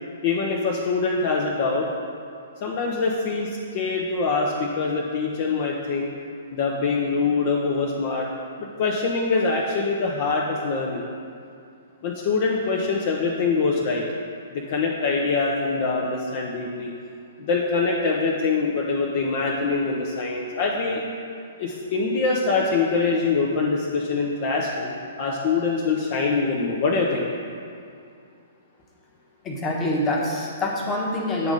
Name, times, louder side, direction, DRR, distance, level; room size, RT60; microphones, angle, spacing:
voice 1, 0.2-1.9 2.6-6.1 6.5-8.3 8.6-11.0 12.0-14.0 14.5-16.9 17.5-21.0 21.6-27.3, left 4 dB, 45° left, -2 dB, 0.6 m, -24 dB
voice 2, 29.4-31.5, left 1 dB, 20° left, -2 dB, 1.1 m, -25 dB
8.0 x 3.6 x 5.2 m, 2.4 s
figure-of-eight pair, 115°, 0 cm